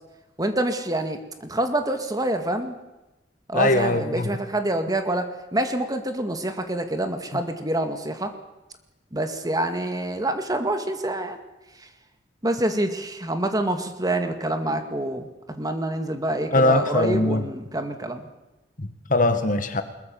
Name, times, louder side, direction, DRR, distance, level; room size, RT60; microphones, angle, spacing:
voice 1, 0.4-2.8 3.5-8.3 9.1-11.4 12.4-18.2, right 1 dB, 20° right, 7 dB, 2.1 m, -26 dB
voice 2, 3.5-4.3 7.3-7.4 16.5-17.5 18.8-19.8, left 2 dB, 50° left, 9 dB, 1.8 m, -21 dB
21.5 x 21.5 x 7.1 m, 1.0 s
head